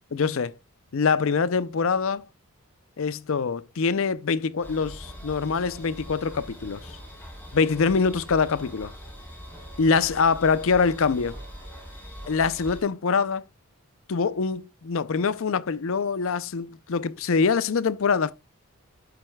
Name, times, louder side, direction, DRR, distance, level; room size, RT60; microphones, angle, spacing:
voice 1, 0.1-0.5 0.9-2.2 3.0-6.9 7.5-8.9 9.8-11.4 12.3-13.4 14.1-18.3, left 5 dB, 60° left, 0.5 m, -24 dB
sound 1, 4.6-12.8, equal, 10° left, 3.5 m, -42 dB
11.5 x 7.6 x 2.2 m
head